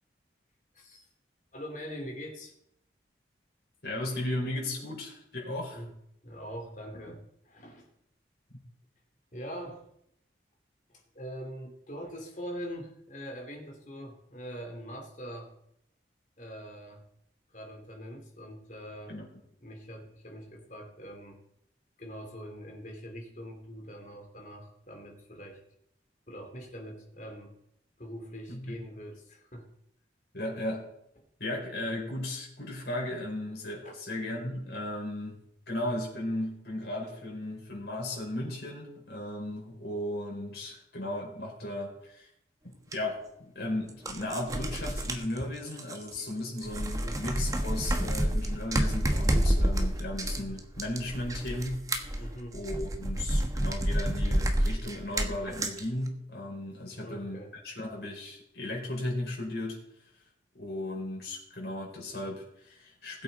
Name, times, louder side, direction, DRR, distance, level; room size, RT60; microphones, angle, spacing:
voice 1, 0.7-1.1 1.5-2.5 4.9-5.0 5.7-5.9 6.2-7.9 9.3-9.8 10.9-15.5 16.4-17.0 17.5-19.2 19.6-21.4 22.0-25.6 26.3-27.6 28.0-29.7 33.8-34.0 47.0-47.2 52.2-52.6 57.0-57.5, equal, 45° left, 2 dB, 2.9 m, -43 dB
voice 2, 3.8-5.8 19.1-19.3 28.5-28.8 30.3-30.9 31.4-35.4 35.7-42.3 42.6-52.2 52.5-59.8 60.5-63.2, left 1 dB, 60° left, -2 dB, 4.9 m, -36 dB
sound 1, 42.9-43.0 43.9-46.3 46.6-55.8, right 1 dB, 20° right, 1.1 m, -29 dB
19.5 x 8.4 x 4.1 m, 0.76 s
head